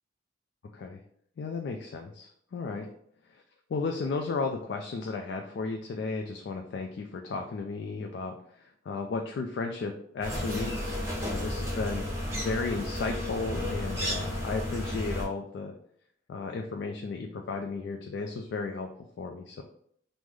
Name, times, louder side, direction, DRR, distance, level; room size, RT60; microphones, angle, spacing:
voice 1, 1.4-2.9 3.7-12.0 12.4-15.7 16.3-18.9 19.2-19.6, left 4 dB, 60° left, 3 dB, 0.3 m, -34 dB
sound 1, 10.2-15.3, left 1 dB, 15° right, 0.7 m, -32 dB
3.1 x 2.0 x 3.6 m, 0.64 s
head